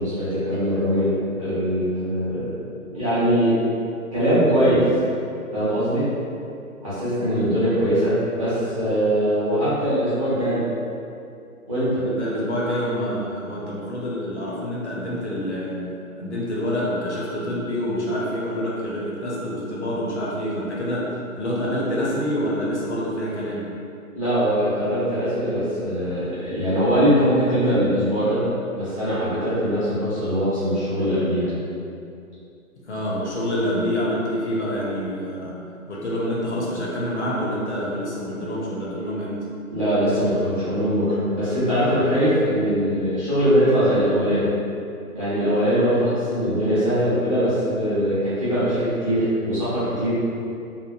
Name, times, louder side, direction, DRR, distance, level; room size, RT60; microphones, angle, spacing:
voice 1, 0.0-2.5 2.9-3.6 4.1-4.8 5.5-6.1 6.8-10.6 11.7-12.0 24.1-28.4 28.7-31.5 39.7-44.5 45.1-50.1, equal, 25° right, -15 dB, 0.6 m, -21 dB
voice 2, 12.0-15.8 16.2-21.1 21.3-23.7 32.9-35.6 35.9-39.4, equal, 50° left, -5 dB, 0.5 m, -27 dB
2.9 x 2.1 x 2.2 m, 2.6 s
hypercardioid pair, 160°, 44 cm